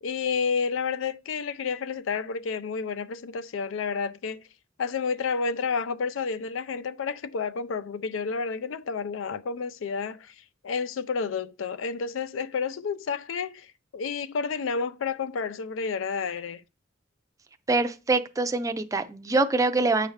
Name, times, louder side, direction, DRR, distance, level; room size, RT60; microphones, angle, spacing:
voice 1, 0.0-4.4 4.8-10.3 10.6-16.6, left 5 dB, 85° left, 0.4 m, -30 dB
voice 2, 17.7-20.1, right 3 dB, 15° right, 0.4 m, -24 dB
8.0 x 4.9 x 3.2 m
head